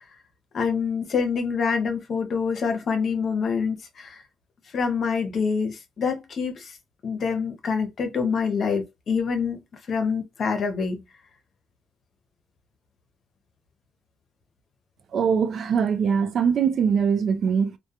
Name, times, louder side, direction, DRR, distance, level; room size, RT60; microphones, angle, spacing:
voice 1, 0.5-4.2 4.7-6.7 7.0-9.6 9.9-11.0, left 5 dB, 55° left, 0.7 m, -26 dB
voice 2, 15.1-17.8, right 6 dB, 60° right, 0.4 m, -22 dB
2.2 x 2.2 x 2.8 m
cardioid pair, 90°, 0 cm